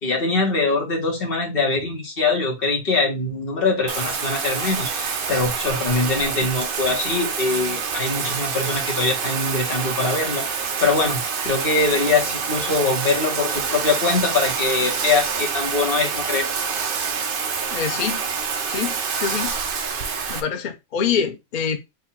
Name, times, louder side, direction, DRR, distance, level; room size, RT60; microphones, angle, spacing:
voice 1, 0.0-16.5, left 3 dB, 45° left, 1.2 m, -23 dB
Bathtub (filling or washing), 3.9-20.4, right 6 dB, 55° right, 0.6 m, -26 dB
voice 2, 17.7-18.2 18.7-19.5 20.3-21.8, left 7 dB, 70° left, 0.4 m, -25 dB
3.7 x 2.4 x 4.4 m
omnidirectional pair, 1.5 m